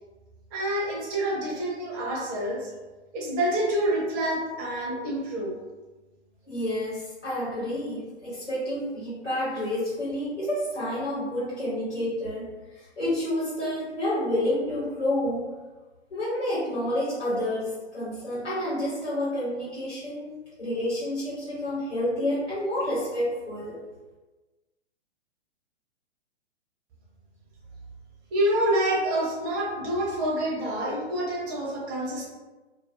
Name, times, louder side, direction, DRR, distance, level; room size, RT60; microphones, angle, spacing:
voice 1, 0.5-2.7 3.1-5.5 28.3-32.3, right 1 dB, 15° right, -4 dB, 0.4 m, -27 dB
voice 2, 6.5-15.5 16.1-20.3 20.6-23.8, left 1 dB, 90° left, -10 dB, 1.2 m, -29 dB
2.3 x 2.3 x 2.4 m, 1.2 s
hypercardioid pair, 130°, 35 cm